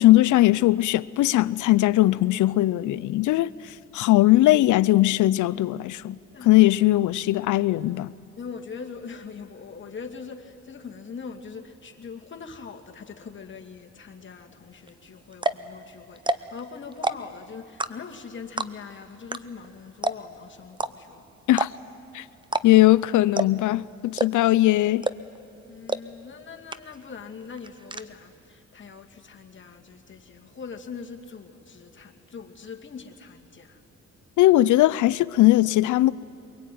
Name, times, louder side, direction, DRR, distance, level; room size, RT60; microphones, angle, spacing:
voice 1, 0.0-3.5 3.9-6.2 6.4-8.1 21.5-21.7 22.1-22.2 22.6-25.1 34.4-36.1, left 16 dB, 75° left, 0.6 m, -19 dB
voice 2, 8.4-21.2 25.7-33.8, left 5 dB, 40° left, 2.3 m, -42 dB
sound 1, 14.9-15.0 15.3-15.7 16.2-16.6 16.9-17.4 17.8-18.2 18.6-18.9 19.3-19.4 19.6-19.7 20.0-20.4 20.8-20.9 21.5-22.0 22.4-22.7 22.9-23.0 23.4-23.7 24.2-24.5 25.0-25.4 25.9-26.0 26.3-26.4 26.7-27.1 27.4-28.0, right 2 dB, 15° right, 0.7 m, -27 dB
23.5 x 23.0 x 9.3 m
cardioid pair, 90°, 30 cm